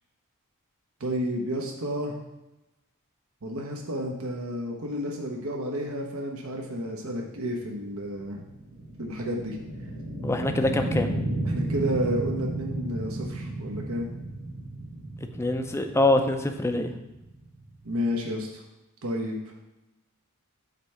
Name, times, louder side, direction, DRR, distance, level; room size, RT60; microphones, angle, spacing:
voice 1, 1.0-2.1 3.4-8.4 9.0-9.6 11.4-14.1 17.8-18.6 19.0-19.3, equal, 65° right, 1 dB, 0.9 m, -31 dB
sound 1, 7.4-18.1, right 1 dB, 45° right, 1.6 m, -33 dB
voice 2, 10.2-11.1 15.4-16.9, left 1 dB, 10° left, 5 dB, 0.5 m, -24 dB
7.9 x 3.3 x 5.7 m, 0.99 s
head